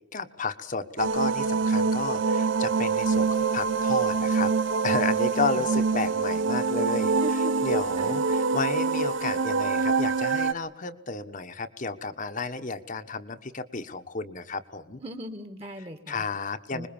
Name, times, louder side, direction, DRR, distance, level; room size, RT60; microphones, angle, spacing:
voice 1, 0.1-4.5 4.8-7.1 7.6-15.0 16.1-16.9, left 4 dB, 45° left, 8 dB, 1.4 m, -32 dB
sound 1, 1.0-10.5, right 4 dB, 90° right, 1.0 m, -25 dB
voice 2, 7.2-7.6 8.0-8.2 15.0-16.2 16.7-16.9, right 1 dB, 30° right, 8 dB, 2.2 m, -38 dB
26.0 x 21.5 x 7.3 m, 0.88 s
head